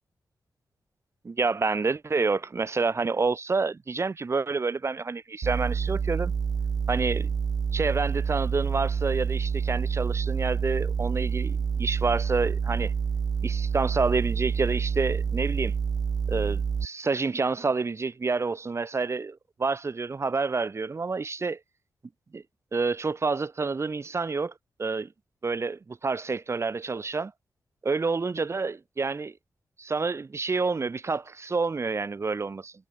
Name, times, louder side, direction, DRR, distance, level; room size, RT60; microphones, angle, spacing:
voice 1, 1.2-6.3 6.9-7.3 7.7-12.9 13.4-15.7 16.3-21.6 22.3-22.4 22.7-24.5 24.8-25.1 25.4-27.3 27.8-29.3 29.8-32.7, right 4 dB, 40° right, 5.4 m, -28 dB
sound 1, 5.4-16.9, right 6 dB, 65° right, 4.2 m, -28 dB
wide cardioid pair, 100°, 7 cm